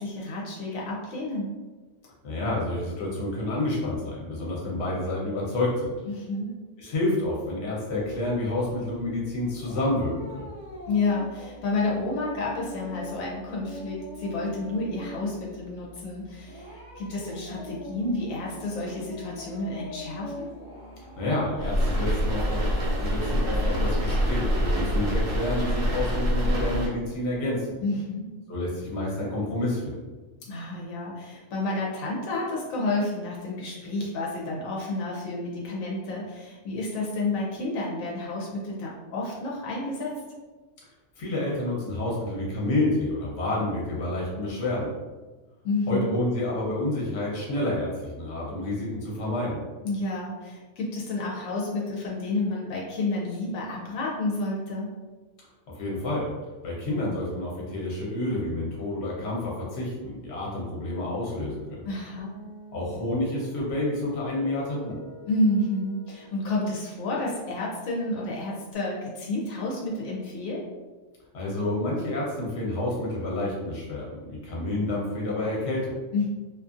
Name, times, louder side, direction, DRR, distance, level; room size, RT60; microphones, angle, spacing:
voice 1, 0.0-1.5 6.1-6.5 10.9-20.5 27.8-28.3 30.5-40.2 45.6-46.1 49.8-54.9 61.8-62.3 65.3-70.7 76.1-76.3, left 2 dB, 85° left, -3 dB, 1.0 m, -30 dB
voice 2, 2.2-5.9 6.8-10.4 21.2-22.6 23.0-27.8 28.5-30.0 41.2-44.9 45.9-49.6 55.7-56.3 56.6-61.9 62.7-65.0 71.3-76.0, left 1 dB, 60° left, -4 dB, 1.0 m, -29 dB
sound 1, 7.9-24.8, equal, 25° right, 0.5 m, -43 dB
sound 2, 21.6-26.9, equal, 80° right, 1.1 m, -25 dB
Guitar, 62.2-68.7, left 2 dB, 25° left, 0.7 m, -45 dB
2.6 x 2.5 x 2.4 m, 1.3 s
omnidirectional pair, 1.4 m